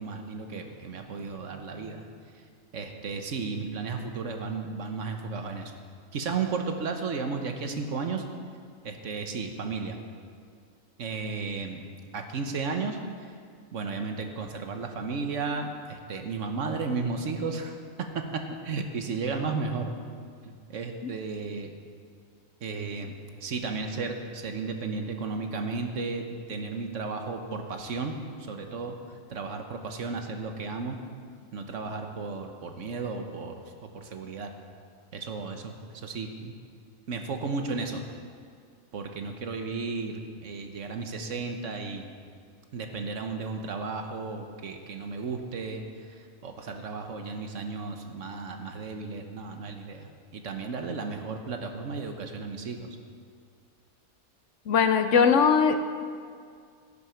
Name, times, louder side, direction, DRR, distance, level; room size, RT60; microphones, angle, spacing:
voice 1, 0.0-2.1 2.3-2.4 2.7-5.7 6.1-8.2 8.8-10.0 11.0-11.8 12.1-13.0 13.7-17.7 18.0-19.9 20.4-21.7 22.6-23.1 23.4-28.1 28.4-29.0 29.3-31.0 31.5-34.5 35.1-36.5 37.1-38.0 38.9-42.1 42.7-53.0, right 4 dB, 65° right, 5 dB, 1.3 m, -34 dB
voice 2, 54.7-56.0, left 6 dB, 65° left, 9 dB, 0.9 m, -21 dB
17.0 x 6.9 x 5.7 m, 2.2 s
omnidirectional pair, 1.4 m